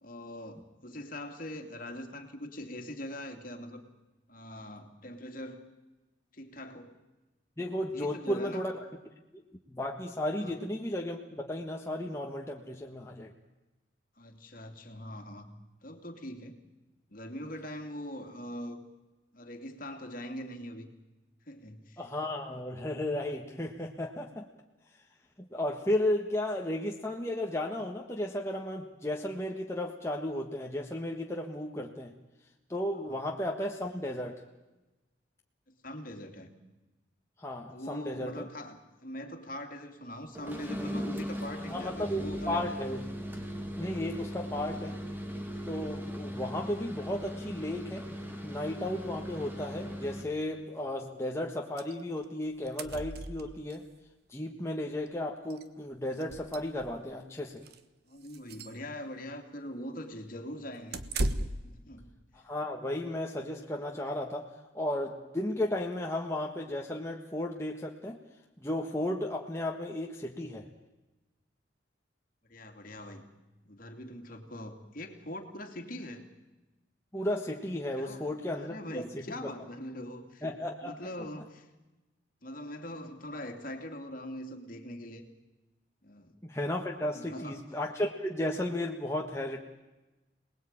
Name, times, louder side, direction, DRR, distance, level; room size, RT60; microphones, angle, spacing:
voice 1, 0.0-3.8 4.3-5.6 6.3-6.9 7.9-8.7 10.4-10.5 14.2-15.5 15.8-16.6 17.1-18.8 19.3-20.9 21.5-22.0 33.1-33.2 35.7-36.5 37.7-42.8 44.4-44.5 58.1-61.0 61.6-62.1 72.5-73.3 73.6-76.2 78.0-78.3 78.5-80.4 80.8-81.7 82.4-85.2 86.0-86.3 87.1-87.6, left 1 dB, 45° left, 5 dB, 2.8 m, -42 dB
voice 2, 7.6-8.8 9.3-9.4 9.7-13.3 22.0-24.5 25.4-32.1 32.7-34.4 37.4-38.5 41.7-43.0 43.8-45.0 45.7-48.1 48.4-53.8 54.3-57.6 62.3-68.2 68.6-70.7 77.1-79.5 80.4-81.1 86.4-89.6, left 1 dB, 15° left, 0 dB, 1.5 m, -34 dB
sound 1, 40.3-50.4, equal, 10° right, 2.4 m, -38 dB
Metallic doorknob and door shutting, 51.8-51.9 52.2-52.3 52.5-53.8 55.1-55.2 55.5-55.6 56.1-57.1 57.6-57.8 58.2-58.8 60.9-61.8, right 2 dB, 55° right, 1.3 m, -36 dB
27.5 x 20.0 x 9.0 m, 1.1 s
head